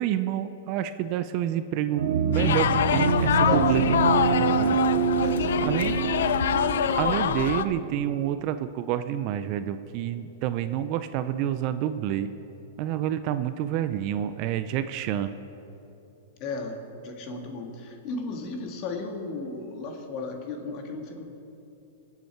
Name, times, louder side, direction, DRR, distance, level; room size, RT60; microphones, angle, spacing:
voice 1, 0.0-4.0 4.4-4.8 5.6-5.9 7.0-12.3 12.8-15.3, right 11 dB, 40° right, 11 dB, 0.5 m, -28 dB
sound 1, 2.0-8.5, right 7 dB, 75° right, 1.3 m, -26 dB
sound 2, 2.3-7.6, left 8 dB, 80° left, 0.5 m, -25 dB
voice 2, 3.3-4.0 5.1-6.0 16.4-21.2, left 3 dB, 40° left, 3 dB, 1.9 m, -35 dB
24.0 x 8.3 x 4.6 m, 2.9 s
supercardioid pair, 155°, 0 cm